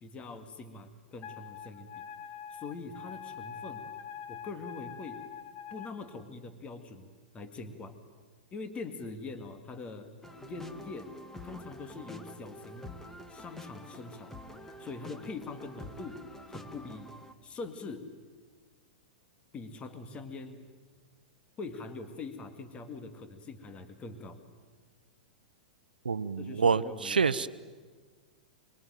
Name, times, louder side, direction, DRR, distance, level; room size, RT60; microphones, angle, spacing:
voice 1, 0.0-2.1 2.5-3.9 4.3-5.2 5.7-7.1 7.3-8.0 8.5-10.1 10.4-11.1 11.4-13.0 13.3-14.3 14.8-16.2 16.5-17.1 17.4-18.1 19.5-20.7 21.6-24.4 26.4-27.2, left 3 dB, 25° left, 8 dB, 2.2 m, -43 dB
Wind instrument woodwind instrument, 1.2-5.9, left 8 dB, 40° left, 2.0 m, -44 dB
sound 1, 10.2-17.4, left 1 dB, 10° left, 1.8 m, -47 dB
voice 2, 26.0-27.5, right 5 dB, 85° right, 14 dB, 0.8 m, -27 dB
25.0 x 23.0 x 9.2 m, 1.5 s
hypercardioid pair, 110°, 5 cm